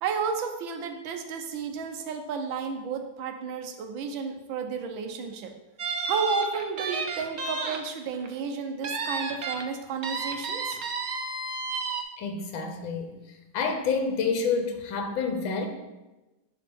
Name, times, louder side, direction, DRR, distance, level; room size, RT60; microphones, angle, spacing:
voice 1, 0.0-5.5 6.1-10.8, right 5 dB, 80° right, 5 dB, 1.5 m, -32 dB
sound 1, 5.8-7.8 8.1-8.3 8.8-9.6 10.0-12.0, right 4 dB, 60° right, 0.6 m, -32 dB
voice 2, 12.2-13.1 13.5-15.7, left 5 dB, 80° left, 4 dB, 1.6 m, -28 dB
11.0 x 4.1 x 3.5 m, 1.1 s
omnidirectional pair, 2.1 m